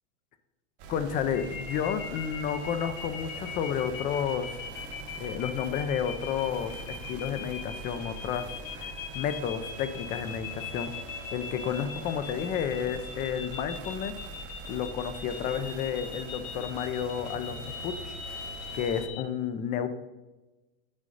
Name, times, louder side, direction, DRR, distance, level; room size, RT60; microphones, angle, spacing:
sound 1, 0.8-19.1, right 3 dB, 55° right, 1.2 m, -43 dB
voice 1, 0.9-4.6 5.2-8.5 8.7-10.9 11.3-14.1 14.7-18.2 18.7-19.9, left 8 dB, 20° left, 10 dB, 0.4 m, -31 dB
sound 2, 1.3-19.2, left 6 dB, 80° left, 1.8 m, -40 dB
7.3 x 6.5 x 3.9 m, 1.1 s
supercardioid pair, 150°, 39 cm